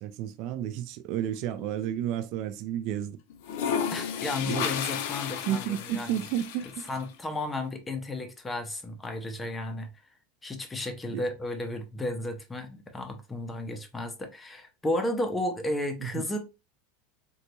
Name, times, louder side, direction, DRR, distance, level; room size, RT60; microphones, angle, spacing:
voice 1, 0.0-3.2 4.4-4.7 5.5-6.9 11.1-11.3 16.0-16.3, right 11 dB, 40° right, 0.3 m, -32 dB
sound 1, 1.2-2.0 3.3-7.1, left 8 dB, 60° left, 0.5 m, -33 dB
voice 2, 3.9-6.1 6.9-9.9 10.4-16.4, left 1 dB, 10° left, 0.5 m, -33 dB
3.9 x 2.2 x 2.9 m
supercardioid pair, 170°, 0 cm